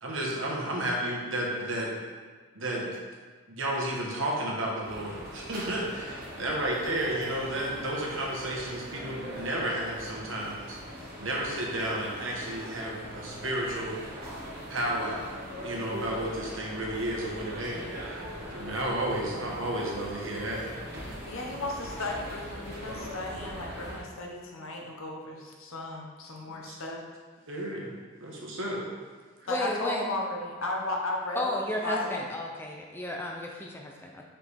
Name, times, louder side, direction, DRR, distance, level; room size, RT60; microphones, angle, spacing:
voice 1, 0.0-1.9 2.5-2.9 3.5-10.8 11.2-14.0 14.7-15.4 15.6-18.2 18.5-20.7 21.0-21.1 26.5-26.7 27.5-27.9 28.2-29.0, right 1 dB, 65° right, -3 dB, 1.3 m, -32 dB
sound 1, 4.8-24.0, equal, 45° right, 1.4 m, -41 dB
voice 2, 21.2-27.0 29.5-32.2, left 2 dB, 75° left, 0 dB, 0.9 m, -35 dB
voice 3, 29.5-30.1 31.4-34.2, left 1 dB, 10° left, 0 dB, 0.4 m, -33 dB
5.8 x 5.2 x 3.4 m, 1.5 s
head